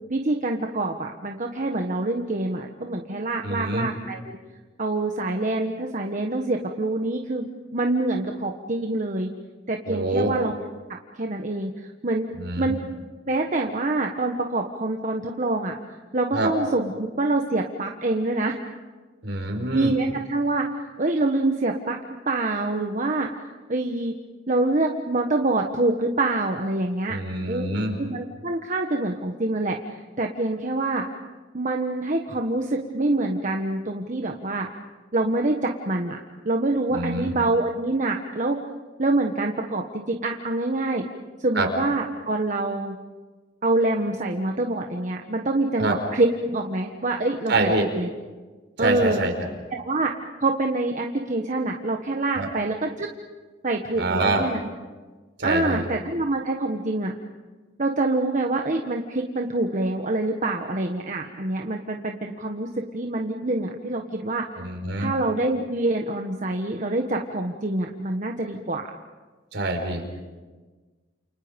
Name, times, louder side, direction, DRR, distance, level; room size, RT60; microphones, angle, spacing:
voice 1, 0.1-4.4 4.8-9.3 9.7-10.5 10.9-12.3 12.6-12.8 13.3-15.7 16.1-18.6 19.7-20.7 21.0-22.0 22.2-23.3 23.7-24.1 24.5-27.2 27.5-27.7 28.0-29.8 30.2-31.0 31.5-34.7 35.1-36.2 36.4-38.6 39.0-41.0 41.4-43.0 43.6-48.1 48.8-49.2 49.7-50.1 50.4-53.1 53.6-54.6 55.4-57.1 57.8-64.5 65.0-68.9, right 2 dB, 40° right, 3 dB, 1.3 m, -26 dB
voice 2, 3.4-3.9 9.9-10.3 12.4-12.7 16.3-16.5 19.2-19.9 27.1-27.9 36.9-37.3 41.5-41.7 45.8-46.0 47.5-47.8 48.8-49.3 52.4-52.5 53.9-54.4 55.4-55.8 64.6-65.1 69.5-70.0, right 2 dB, 65° right, 3 dB, 5.0 m, -25 dB
29.5 x 29.0 x 5.3 m, 1.3 s
head